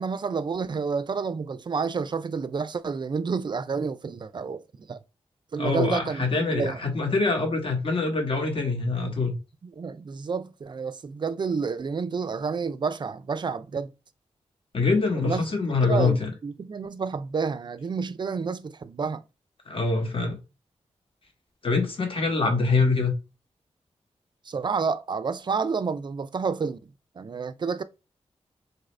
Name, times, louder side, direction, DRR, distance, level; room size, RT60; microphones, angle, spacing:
voice 1, 0.0-5.0 5.5-6.8 9.6-13.9 15.1-15.5 15.8-19.2 24.5-26.8 27.2-27.8, right 5 dB, 40° right, 0.3 m, -29 dB
voice 2, 5.6-9.3 14.7-16.3 19.7-20.4 21.6-23.1, left 3 dB, 55° left, 1.1 m, -24 dB
4.0 x 2.5 x 3.2 m
wide cardioid pair, 95°, 11 cm